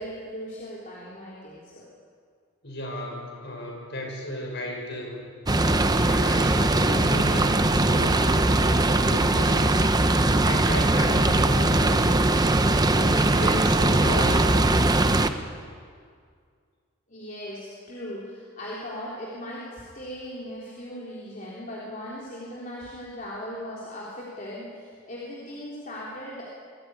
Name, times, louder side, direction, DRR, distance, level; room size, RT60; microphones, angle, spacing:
voice 1, 0.0-1.8 17.1-26.5, equal, 40° left, -6 dB, 3.5 m, -38 dB
voice 2, 2.6-5.3 5.6-9.9 10.4-12.3 12.7-14.5, left 1 dB, 55° left, 0 dB, 6.1 m, -33 dB
sound 1, 5.5-15.3, right 2 dB, 20° right, 0.8 m, -21 dB
23.0 x 15.0 x 9.6 m, 2.1 s
head